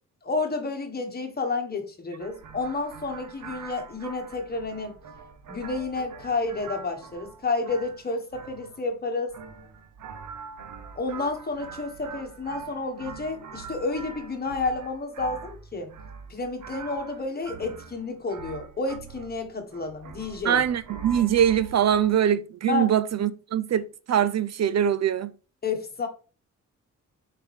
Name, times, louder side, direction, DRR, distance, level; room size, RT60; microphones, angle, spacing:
voice 1, 0.2-4.9 5.5-9.3 10.9-15.9 16.3-20.6 22.7-22.9 25.6-26.1, left 3 dB, 30° left, 1.6 m, -30 dB
sound 1, 2.2-22.1, right 5 dB, 80° right, 1.0 m, -43 dB
voice 2, 20.4-25.3, right 9 dB, 60° right, 0.5 m, -23 dB
7.0 x 4.9 x 3.5 m
wide cardioid pair, 170°, 31 cm